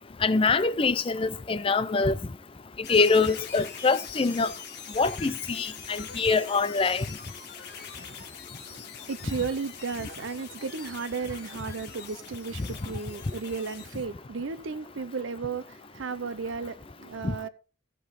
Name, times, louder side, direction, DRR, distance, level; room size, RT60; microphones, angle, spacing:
voice 1, 0.2-2.2 2.9-4.5 4.9-7.0 12.6-12.7 17.2-17.3, left 4 dB, 30° left, 0.4 m, -24 dB
sound 1, 2.8-14.1, left 7 dB, 55° left, 1.7 m, -44 dB
voice 2, 8.6-17.5, right 5 dB, 75° right, 0.6 m, -34 dB
15.5 x 5.3 x 4.1 m
head